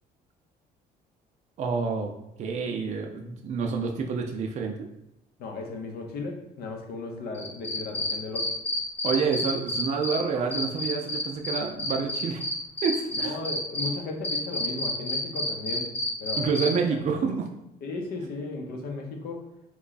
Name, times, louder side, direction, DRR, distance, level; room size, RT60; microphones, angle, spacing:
voice 1, 1.6-2.1 2.4-4.8 9.0-12.4 12.8-13.4 16.4-17.5, right 5 dB, 45° right, 2 dB, 0.4 m, -28 dB
voice 2, 5.4-8.5 13.1-15.9 16.2-16.5 16.9-17.3 17.8-19.5, left 3 dB, 70° left, 2 dB, 0.7 m, -36 dB
Cricket, 7.3-10.2 10.5-13.9 14.2-16.7, left 1 dB, 10° left, 0.8 m, -29 dB
3.1 x 2.2 x 3.9 m, 0.84 s
cardioid pair, 110°, 17 cm